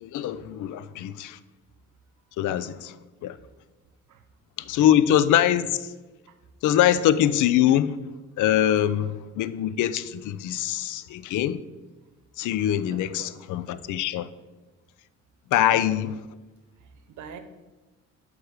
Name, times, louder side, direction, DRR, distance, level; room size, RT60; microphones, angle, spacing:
voice 1, 0.0-1.4 2.4-2.9 3.2-3.4 4.7-5.9 6.6-8.0 8.4-11.6 12.4-14.3 15.5-16.2, left 11 dB, 80° left, 0.5 m, -23 dB
voice 2, 12.9-13.3 15.6-16.0 17.1-17.4, right 7 dB, 80° right, 0.9 m, -44 dB
8.1 x 3.4 x 6.2 m
cardioid pair, 90°, 30 cm